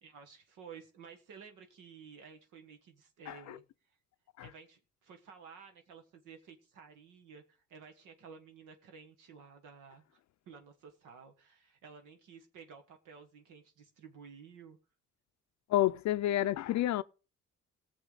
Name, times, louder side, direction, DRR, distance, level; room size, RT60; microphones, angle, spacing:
voice 1, 0.0-3.6 4.4-14.8, right 6 dB, 90° right, 1.6 m, -53 dB
voice 2, 3.3-3.6 4.4-4.5 15.7-17.0, left 13 dB, 65° left, 0.5 m, -30 dB
18.0 x 7.2 x 3.9 m
cardioid pair, 90°, 30 cm